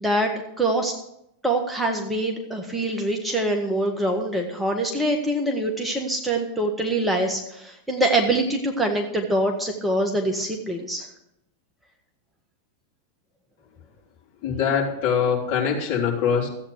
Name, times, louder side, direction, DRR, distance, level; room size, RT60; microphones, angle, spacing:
voice 1, 0.0-0.3 0.6-0.9 1.4-11.1, right 1 dB, 5° right, 1 dB, 1.6 m, -24 dB
voice 2, 14.4-16.5, left 7 dB, 45° left, -1 dB, 3.5 m, -23 dB
14.0 x 8.7 x 6.5 m, 0.80 s
figure-of-eight pair, 90°, 0 cm